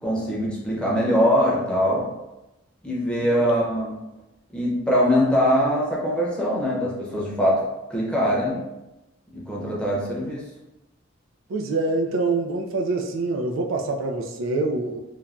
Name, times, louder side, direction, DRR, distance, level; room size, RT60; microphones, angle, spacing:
voice 1, 0.0-2.1 2.8-3.9 4.5-7.6 7.9-8.6 9.3-10.4, equal, 5° left, -6 dB, 0.7 m, -22 dB
voice 2, 11.5-15.0, right 3 dB, 80° right, 3 dB, 0.3 m, -25 dB
3.2 x 2.2 x 2.4 m, 0.96 s
head